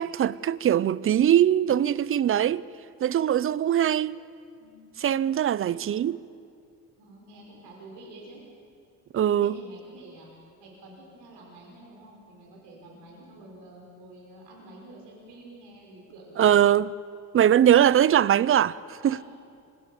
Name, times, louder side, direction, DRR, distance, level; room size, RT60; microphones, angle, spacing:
voice 1, 0.0-2.7 3.0-4.2 5.0-6.2 9.1-9.6 16.4-16.9 17.3-19.2, right 10 dB, 35° right, 0.5 m, -21 dB
voice 2, 4.6-5.1 5.6-5.8 7.0-8.4 9.4-10.3 10.6-16.5 19.0-19.2, right 2 dB, 80° right, 5.7 m, -48 dB
25.5 x 23.5 x 7.1 m
cardioid pair, 120°, 39 cm